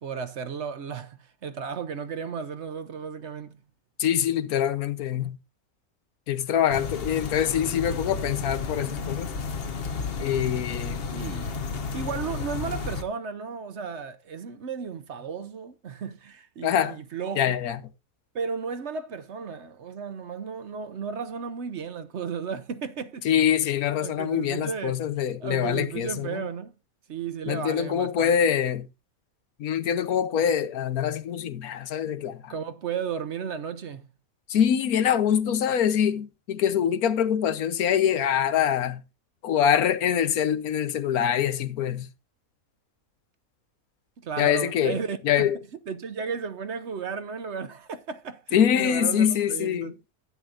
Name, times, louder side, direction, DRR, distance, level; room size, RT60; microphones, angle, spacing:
voice 1, 0.0-3.6 11.1-11.6 11.9-17.6 18.3-23.3 24.0-25.0 25.4-26.7 27.1-28.3 30.4-30.5 32.5-34.1 44.2-45.5 45.9-49.9, right 6 dB, 55° right, 1.0 m, -34 dB
voice 2, 4.0-5.4 6.3-9.3 10.2-11.0 16.6-17.0 17.4-17.8 23.2-26.4 27.5-28.9 29.6-32.5 34.5-39.0 39.4-42.1 44.4-45.0 45.2-45.5 48.5-49.9, left 9 dB, 90° left, 1.3 m, -24 dB
sound 1, 6.7-13.0, left 5 dB, 45° left, 1.0 m, -32 dB
12.0 x 9.4 x 2.5 m
omnidirectional pair, 1.5 m